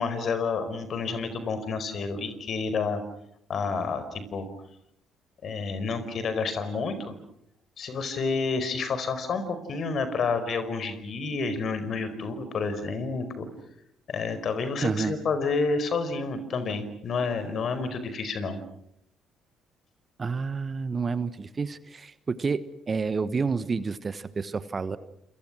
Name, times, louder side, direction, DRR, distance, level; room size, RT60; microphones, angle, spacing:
voice 1, 0.0-3.0 3.5-4.5 5.4-7.1 7.8-13.5 14.1-18.6, left 4 dB, 50° left, 11 dB, 5.0 m, -29 dB
voice 2, 14.8-15.1 20.2-25.0, right 4 dB, 35° right, 15 dB, 1.3 m, -29 dB
29.0 x 28.0 x 6.2 m, 0.74 s
figure-of-eight pair, 45°, 0 cm